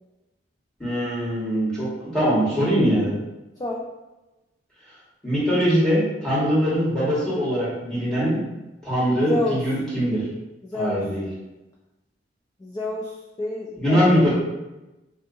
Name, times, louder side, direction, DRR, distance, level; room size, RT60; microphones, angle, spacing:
voice 1, 0.8-3.1 5.2-8.4 8.8-10.2 10.7-11.2 13.8-14.3, equal, 5° left, -9 dB, 1.3 m, -22 dB
voice 2, 9.2-9.6 10.6-11.1 12.6-14.3, left 1 dB, 20° left, -3 dB, 0.3 m, -29 dB
3.5 x 2.7 x 2.6 m, 1.0 s
head